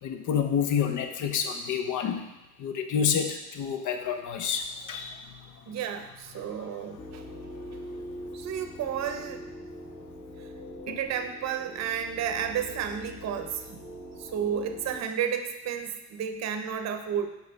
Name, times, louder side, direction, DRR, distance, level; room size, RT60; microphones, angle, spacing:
voice 1, 0.0-2.2 2.6-5.5 6.6-6.7 10.9-11.0, left 7 dB, 75° left, 7 dB, 0.7 m, -29 dB
voice 2, 5.7-7.2 8.3-9.4 10.4-10.5 10.9-13.8 14.2-17.3, right 8 dB, 60° right, 7 dB, 0.6 m, -32 dB
sound 1, 7.0-15.0, left 1 dB, 50° left, 1.3 m, -43 dB
5.4 x 4.7 x 3.9 m, 0.98 s
cardioid pair, 145°, 31 cm